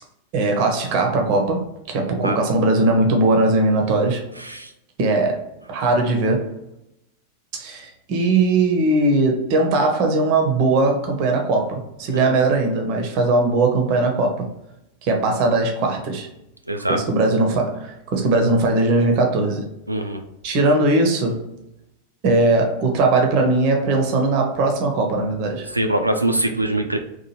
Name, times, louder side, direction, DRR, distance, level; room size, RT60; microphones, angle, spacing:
voice 1, 0.3-4.2 5.0-5.4 5.7-6.5 7.5-14.5 15.0-16.3 16.9-19.7 20.4-21.4 22.2-25.7, right 2 dB, 45° right, 2 dB, 0.6 m, -19 dB
voice 2, 4.4-4.7 12.1-12.5 16.7-17.0 19.9-20.2 25.7-27.0, right 1 dB, 85° right, 5 dB, 0.3 m, -23 dB
2.9 x 2.1 x 2.9 m, 0.85 s
figure-of-eight pair, 90°, 0 cm